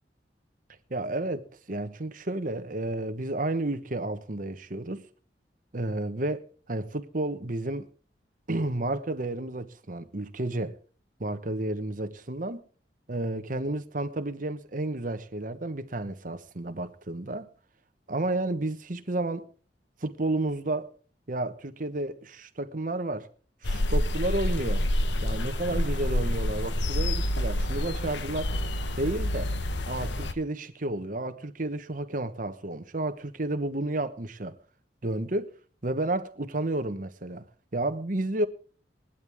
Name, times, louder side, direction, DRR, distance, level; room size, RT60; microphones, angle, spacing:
voice 1, 0.9-5.0 5.7-7.9 8.5-10.8 11.2-12.6 13.1-17.5 18.1-19.5 20.0-20.9 21.3-23.3 23.6-24.8 25.2-28.6 29.0-29.5 29.9-34.6 35.0-35.5 35.8-37.4 37.7-38.5, right 2 dB, 50° right, 1.2 m, -31 dB
sound 1, 23.6-30.3, left 1 dB, 85° left, 1.2 m, -28 dB
19.5 x 11.5 x 3.6 m
head